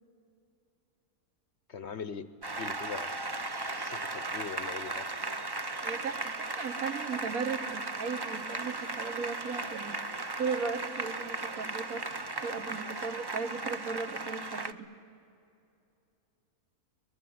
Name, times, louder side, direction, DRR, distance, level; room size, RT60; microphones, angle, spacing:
voice 1, 1.7-2.3 2.6-3.1 3.7-5.1, left 6 dB, 55° left, 14 dB, 0.9 m, -41 dB
Applause, 2.4-14.7, right 2 dB, 25° right, 0.6 m, -36 dB
voice 2, 5.8-10.0 10.4-12.1 12.4-14.9, right 5 dB, 70° right, 10 dB, 1.6 m, -36 dB
23.0 x 21.5 x 9.4 m, 2.7 s
omnidirectional pair, 1.6 m